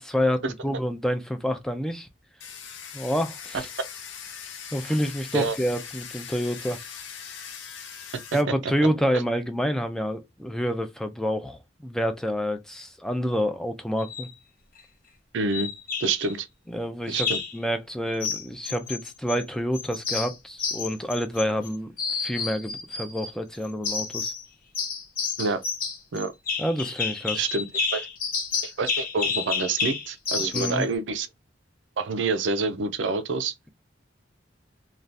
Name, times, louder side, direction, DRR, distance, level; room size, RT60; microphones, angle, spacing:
voice 1, 0.0-2.1 2.9-3.7 4.7-6.8 8.3-14.3 16.7-17.3 17.5-21.9 22.2-24.3 26.6-27.5 30.5-30.9, equal, 5° left, 0.4 m, -28 dB
Domestic sounds home sounds, 2.4-8.4, left 7 dB, 80° left, 0.7 m, -40 dB
sound 1, 14.0-14.3 15.5-16.3 17.1-17.6 18.2-19.4 19.7-21.7 22.0-23.3 23.8-24.4 24.7-30.8, left 5 dB, 50° left, 0.8 m, -30 dB
voice 2, 15.3-15.7 16.0-16.5 17.1-17.4 25.4-25.6 26.1-26.3 27.3-27.7 27.9-28.0 28.6-31.3 32.0-33.5, right 3 dB, 70° right, 0.5 m, -27 dB
2.6 x 2.3 x 3.3 m
head